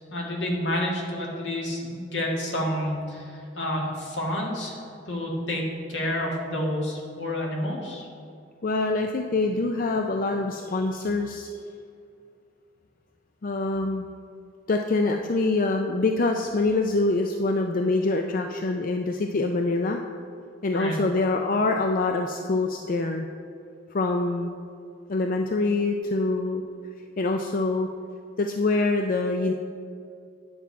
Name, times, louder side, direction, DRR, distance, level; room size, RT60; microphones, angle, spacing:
voice 1, 0.1-4.8 5.1-5.6 5.9-8.1 20.7-21.0, left 1 dB, 75° left, -1 dB, 1.9 m, -29 dB
voice 2, 8.6-11.5 13.4-14.1 14.7-20.0 20.6-23.3 23.9-24.6 25.1-26.6 27.2-27.9 28.4-29.5, left 3 dB, 45° left, 4 dB, 0.4 m, -25 dB
9.7 x 7.0 x 4.6 m, 2.4 s
head